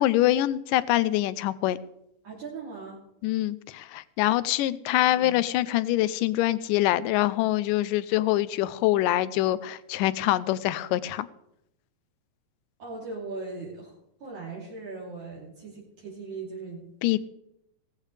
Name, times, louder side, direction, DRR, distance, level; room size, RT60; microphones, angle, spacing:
voice 1, 0.0-1.8 3.2-11.3 17.0-17.2, left 15 dB, 85° left, 16 dB, 2.2 m, -24 dB
voice 2, 2.2-3.0 5.0-5.4 12.8-16.8, right 3 dB, 60° right, -7 dB, 4.5 m, -39 dB
18.0 x 14.5 x 3.3 m, 0.80 s
omnidirectional pair, 3.8 m